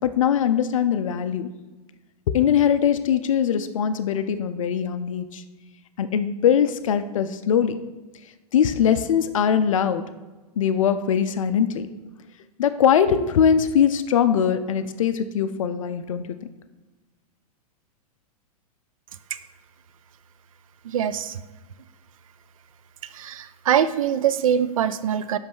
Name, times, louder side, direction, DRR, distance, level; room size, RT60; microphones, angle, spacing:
voice 1, 0.0-1.5 2.3-5.4 6.0-7.8 8.5-10.0 10.6-11.9 12.6-16.2, left 8 dB, 55° left, 11 dB, 0.4 m, -21 dB
voice 2, 20.8-21.4 23.1-25.4, right 9 dB, 60° right, 13 dB, 0.4 m, -23 dB
5.6 x 5.1 x 4.5 m, 1.2 s
figure-of-eight pair, 100°, 20 cm